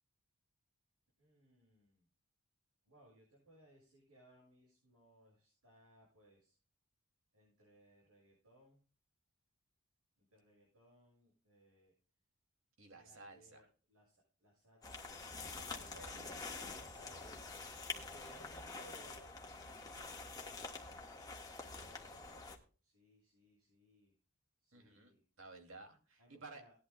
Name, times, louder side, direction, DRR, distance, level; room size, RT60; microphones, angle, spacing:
voice 1, 1.2-2.1 2.9-6.5 7.3-8.8 10.2-11.9 12.9-15.1 15.7-17.6 17.9-19.3 20.0-20.7 21.5-24.1 24.6-25.2 26.2-26.7, right 1 dB, 90° right, -4 dB, 7.2 m, -65 dB
voice 2, 12.8-13.7 15.3-16.2 18.2-18.3 24.7-26.6, right 3 dB, 60° right, 4 dB, 2.5 m, -55 dB
sound 1, 14.8-22.6, left 3 dB, 15° left, 1.5 m, -47 dB
18.5 x 11.0 x 2.2 m, 0.37 s
head